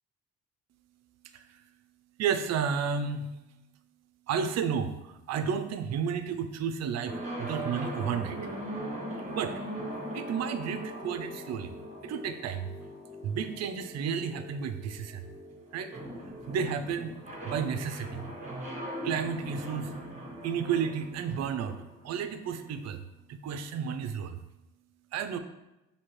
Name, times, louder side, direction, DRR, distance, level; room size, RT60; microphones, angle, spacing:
voice 1, 2.2-3.3 4.3-8.4 9.3-9.6 10.1-11.8 12.0-12.7 13.2-15.3 15.7-15.9 16.5-17.1 17.4-18.3 19.0-19.9 20.4-21.8 22.0-23.0 23.3-24.4 25.1-25.4, right 7 dB, 60° right, 9 dB, 0.4 m, -32 dB
sound 1, 7.0-22.8, right 1 dB, 25° right, 1.1 m, -40 dB
4.3 x 2.8 x 3.1 m, 0.96 s
cardioid pair, 90°, 30 cm